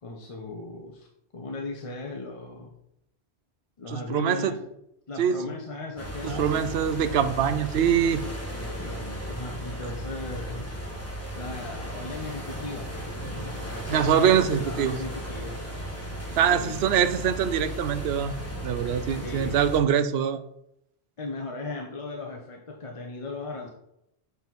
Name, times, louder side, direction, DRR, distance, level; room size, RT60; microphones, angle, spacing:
voice 1, 0.0-2.7 3.8-4.7 5.1-6.7 8.5-10.7 11.3-15.6 16.4-16.8 19.2-19.5 21.2-23.7, left 3 dB, 35° left, 1 dB, 0.7 m, -37 dB
voice 2, 3.9-4.6 5.2-5.5 6.2-8.2 13.9-15.0 16.4-18.4 18.6-20.4, right 8 dB, 70° right, 11 dB, 0.8 m, -24 dB
sound 1, 6.0-19.8, right 1 dB, 15° left, 1.2 m, -36 dB
6.6 x 4.3 x 4.0 m, 0.80 s
omnidirectional pair, 1.2 m